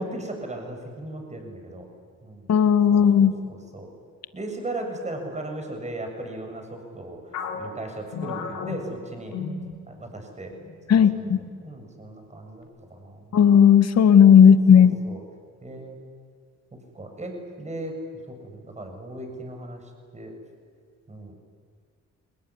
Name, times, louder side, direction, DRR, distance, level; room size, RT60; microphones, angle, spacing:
voice 1, 0.0-1.9 2.2-2.5 2.9-3.9 4.3-9.4 9.9-10.5 10.9-11.0 11.6-13.4 14.4-15.2 15.6-16.0 16.9-17.9 18.3-19.8 20.1-20.3 21.1-21.3, right 1 dB, 25° right, 3 dB, 7.5 m, -37 dB
voice 2, 2.5-3.3 10.9-11.4 13.3-14.9, left 8 dB, 60° left, 11 dB, 1.9 m, -14 dB
sound 1, 7.3-10.2 10.5-10.7 11.4-11.8, left 5 dB, 75° left, 4.4 m, -35 dB
28.5 x 20.5 x 9.9 m, 2.1 s
cardioid pair, 90°, 30 cm